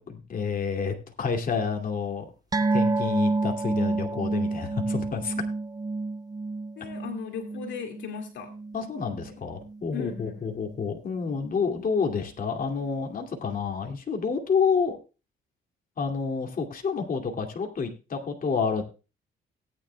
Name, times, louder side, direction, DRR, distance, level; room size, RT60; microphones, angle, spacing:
voice 1, 0.0-2.3 2.7-5.3 6.8-6.9 8.7-15.0 16.0-18.8, left 5 dB, 45° left, 2 dB, 2.4 m, -29 dB
sound 1, 2.5-9.3 9.6-9.8 10.2-10.3, right 3 dB, 20° right, 0.7 m, -29 dB
voice 2, 6.8-8.5 9.3-9.4 9.9-10.6, left 7 dB, 70° left, 4 dB, 2.1 m, -37 dB
18.5 x 9.9 x 2.3 m, 0.30 s
cardioid pair, 90°, 20 cm